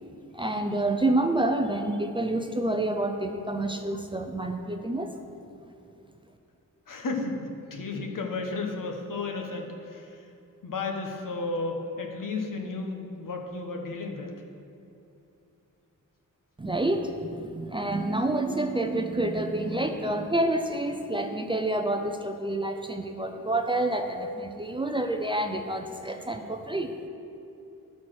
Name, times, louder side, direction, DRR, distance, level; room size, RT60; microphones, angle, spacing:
voice 1, 0.3-5.1 16.6-26.9, right 1 dB, 15° right, 4 dB, 0.4 m, -28 dB
voice 2, 6.9-10.3 10.6-14.3, left 3 dB, 70° left, 2 dB, 1.1 m, -33 dB
11.5 x 4.2 x 6.2 m, 2.8 s
wide cardioid pair, 140°, 33 cm